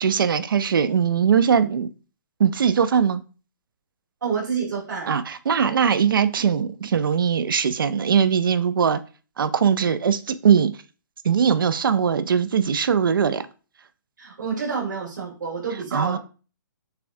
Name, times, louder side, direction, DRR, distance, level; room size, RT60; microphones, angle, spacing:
voice 1, 0.0-1.9 2.4-3.2 5.1-9.0 9.4-10.7 11.2-13.4 15.9-16.2, right 7 dB, 90° right, 0.5 m, -20 dB
voice 2, 4.2-5.1 14.2-16.2, right 5 dB, 65° right, 2.1 m, -28 dB
6.6 x 2.4 x 2.6 m
hypercardioid pair, 170°, 11 cm